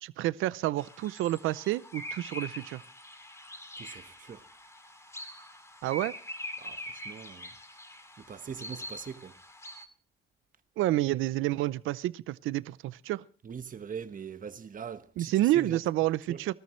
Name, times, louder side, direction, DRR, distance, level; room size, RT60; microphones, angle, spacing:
voice 1, 0.0-2.8 5.8-6.1 10.8-13.2 15.2-16.5, right 15 dB, 90° right, 0.6 m, -29 dB
sound 1, 0.8-9.9, left 1 dB, 15° left, 2.6 m, -44 dB
voice 2, 3.8-4.4 6.6-7.5 8.2-9.3 13.4-15.8 16.3-16.5, right 7 dB, 45° right, 1.3 m, -42 dB
24.5 x 13.5 x 3.2 m
cardioid pair, 90°, 20 cm